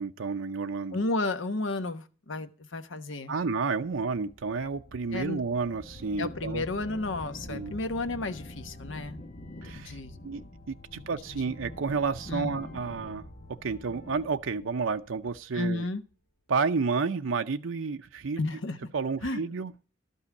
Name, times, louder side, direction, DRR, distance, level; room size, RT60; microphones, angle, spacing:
voice 1, 0.0-1.0 3.3-6.6 7.5-7.7 9.6-10.0 10.2-10.4 10.7-13.2 13.6-15.8 16.5-18.4 18.9-19.7, right 4 dB, 90° right, 0.6 m, -30 dB
voice 2, 0.9-3.3 5.1-5.4 6.2-9.2 9.7-10.2 10.9-11.5 12.3-12.6 15.5-16.0 18.4-18.8 19.2-19.4, left 2 dB, 75° left, 1.1 m, -32 dB
sound 1, 3.9-15.7, left 1 dB, 40° left, 1.2 m, -46 dB
12.5 x 5.5 x 8.2 m
head